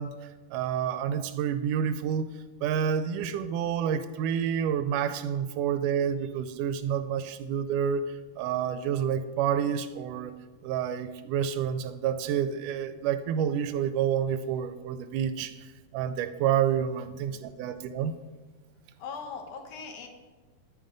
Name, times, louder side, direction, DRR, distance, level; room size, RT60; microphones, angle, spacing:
voice 1, 0.0-2.3 2.6-10.4 10.6-18.1, right 8 dB, 80° right, 11 dB, 1.9 m, -29 dB
voice 2, 16.9-17.5 19.0-20.1, left 5 dB, 65° left, 3 dB, 2.6 m, -41 dB
11.0 x 9.2 x 5.2 m, 1.3 s
omnidirectional pair, 4.1 m